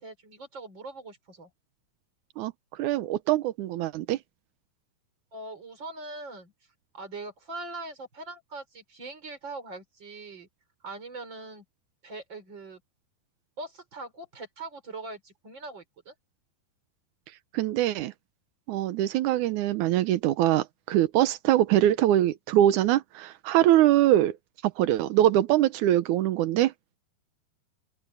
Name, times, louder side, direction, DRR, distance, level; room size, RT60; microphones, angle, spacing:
voice 1, 0.0-1.5 5.3-6.5 6.9-10.5 10.8-11.6 12.0-12.8 13.6-16.1, right 2 dB, 30° right, 5.0 m, -41 dB
voice 2, 2.4-4.2 17.5-18.1 18.7-24.3 24.6-26.7, right 13 dB, 80° right, 1.7 m, -23 dB
open air
omnidirectional pair, 4.6 m